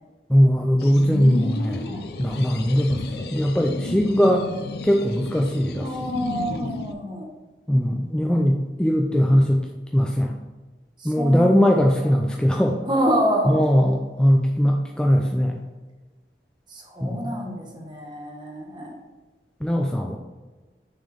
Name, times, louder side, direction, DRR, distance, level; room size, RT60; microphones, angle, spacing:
voice 1, 0.3-1.9 2.2-4.4 4.8-5.9 7.7-9.6 9.9-10.3 11.0-12.8 13.5-15.6 17.0-17.3 19.6-20.2, equal, 5° left, 1 dB, 0.4 m, -20 dB
sound 1, 0.8-6.9, left 3 dB, 60° left, 0.5 m, -33 dB
voice 2, 5.8-7.3 11.0-11.7 12.0-12.1 12.9-13.6 16.7-19.0, equal, 25° right, -1 dB, 1.3 m, -27 dB
6.3 x 4.3 x 5.0 m, 1.2 s
head